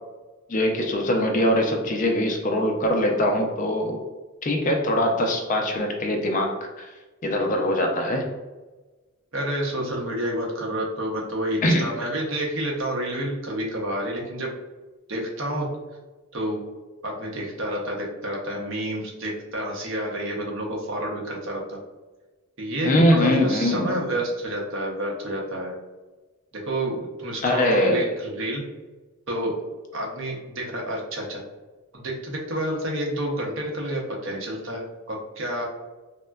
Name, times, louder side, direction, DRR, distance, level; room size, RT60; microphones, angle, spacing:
voice 1, 0.5-4.0 4.4-6.9 7.2-8.3 11.6-11.9 22.8-23.9 27.4-28.0, left 1 dB, 35° left, 2 dB, 0.3 m, -22 dB
voice 2, 9.3-14.5 15.1-15.7 16.3-16.7 17.0-21.8 22.6-25.8 26.5-28.7 29.3-29.6 29.9-31.4 31.9-35.6, right 1 dB, 60° right, -1 dB, 0.6 m, -29 dB
3.5 x 2.1 x 2.2 m, 1.2 s
head